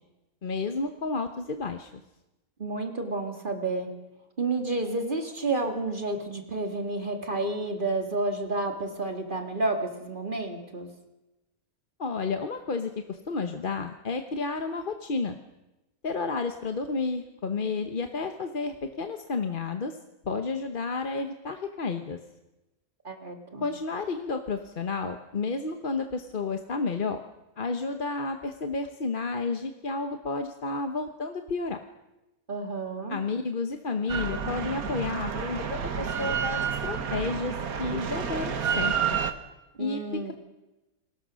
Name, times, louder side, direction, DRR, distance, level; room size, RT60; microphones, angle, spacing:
voice 1, 0.4-1.9 12.0-15.4 16.0-20.0 20.2-22.2 23.6-27.2 27.6-31.8 33.1-37.5 37.8-39.0 39.8-40.3, left 4 dB, 40° left, 7 dB, 1.1 m, -31 dB
voice 2, 2.6-3.9 4.4-10.9 23.0-23.7 32.5-33.2 39.8-40.3, right 2 dB, 35° right, 5 dB, 2.3 m, -30 dB
Drill, 34.1-39.3, right 7 dB, 70° right, 1.8 m, -30 dB
29.0 x 20.5 x 6.3 m, 1.0 s
omnidirectional pair, 1.6 m